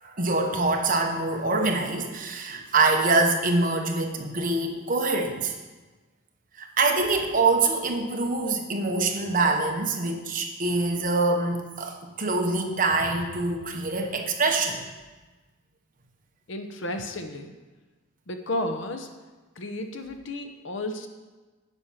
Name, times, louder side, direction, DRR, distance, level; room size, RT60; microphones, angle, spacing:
voice 1, 0.0-5.5 6.5-14.8, right 3 dB, 40° right, 3 dB, 1.0 m, -25 dB
voice 2, 16.5-17.5 18.3-19.1 19.6-21.1, left 1 dB, 55° left, 6 dB, 0.8 m, -32 dB
9.8 x 6.1 x 5.7 m, 1.2 s
head